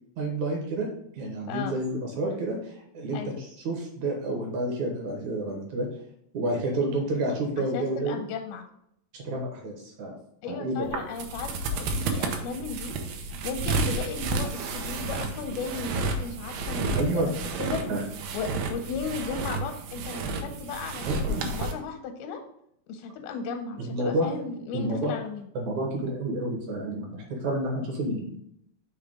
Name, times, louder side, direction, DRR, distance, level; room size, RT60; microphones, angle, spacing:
voice 1, 0.2-0.9 1.1-5.9 6.3-8.2 9.1-10.2 10.5-10.7 17.0-17.3 17.9-18.0 21.0-21.5 23.8-24.3 24.7-25.1 25.5-28.4, right 1 dB, 65° right, 0 dB, 2.1 m, -29 dB
voice 2, 7.6-8.7 10.4-17.2 17.6-17.8 18.3-22.4 22.9-25.5, left 5 dB, 90° left, 4 dB, 2.6 m, -36 dB
sound 1, 10.8-21.7, right 3 dB, 90° right, 2.7 m, -31 dB
6.3 x 3.4 x 5.1 m, 0.73 s
omnidirectional pair, 4.2 m